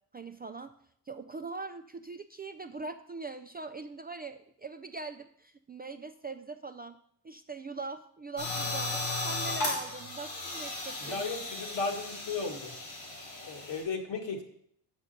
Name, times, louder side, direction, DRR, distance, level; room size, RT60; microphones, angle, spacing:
voice 1, 0.1-0.7 1.1-7.0 7.2-11.4, right 4 dB, 20° right, 8 dB, 0.3 m, -42 dB
sound 1, 8.4-13.8, left 2 dB, 85° left, 3.5 m, -36 dB
voice 2, 11.0-12.7 13.4-14.4, left 4 dB, 65° left, 2 dB, 1.7 m, -35 dB
6.4 x 6.2 x 5.2 m, 0.67 s
supercardioid pair, 60°, 47 cm